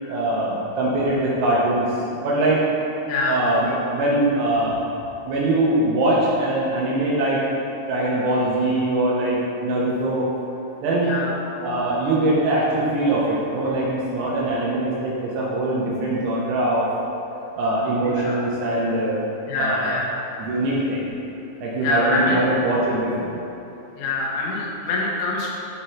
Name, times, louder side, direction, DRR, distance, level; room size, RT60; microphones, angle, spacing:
voice 1, 0.1-2.0 2.2-2.6 3.3-4.8 5.3-7.4 7.9-10.3 10.8-11.1 11.6-16.9 17.6-19.2 19.6-19.9 20.4-21.1 21.6-23.3, right 1 dB, 75° right, -5 dB, 2.6 m, -22 dB
voice 2, 3.1-3.4 11.0-11.3 18.0-18.4 19.5-20.1 21.8-22.4 24.0-25.5, left 2 dB, 85° left, -3 dB, 3.8 m, -25 dB
11.0 x 4.2 x 4.4 m, 2.8 s
omnidirectional pair, 5.7 m